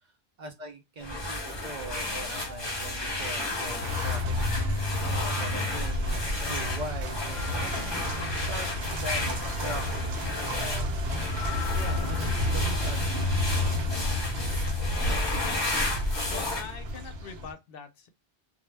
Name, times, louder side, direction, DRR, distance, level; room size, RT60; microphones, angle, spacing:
voice 1, 0.4-8.7 9.0-9.2 9.6-10.0 10.3-11.1 11.7-13.3, right 1 dB, 55° right, 0.6 m, -41 dB
sound 1, 1.0-16.6, left 2 dB, 30° left, 0.9 m, -33 dB
sound 2, 2.3-3.7 4.3-5.6 7.1-8.8 9.5-13.0, left 8 dB, 50° left, 0.4 m, -45 dB
sound 3, 3.8-17.5, left 1 dB, 75° right, 0.9 m, -30 dB
voice 2, 15.4-15.9 16.3-18.1, left 6 dB, 70° left, 0.7 m, -43 dB
2.2 x 2.0 x 3.1 m
omnidirectional pair, 1.1 m